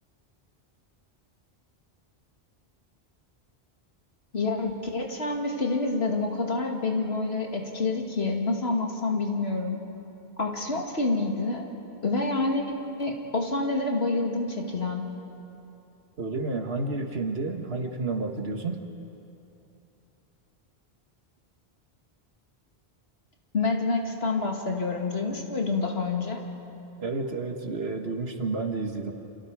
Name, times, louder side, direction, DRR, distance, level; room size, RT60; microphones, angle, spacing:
voice 1, 4.3-9.8 10.4-11.7 12.0-12.6 13.0-15.1 23.5-26.4, left 3 dB, 80° left, 1 dB, 2.5 m, -27 dB
voice 2, 16.2-18.8 27.0-29.1, right 3 dB, 75° right, 4 dB, 1.8 m, -30 dB
29.5 x 27.0 x 4.9 m, 2.9 s
omnidirectional pair, 1.1 m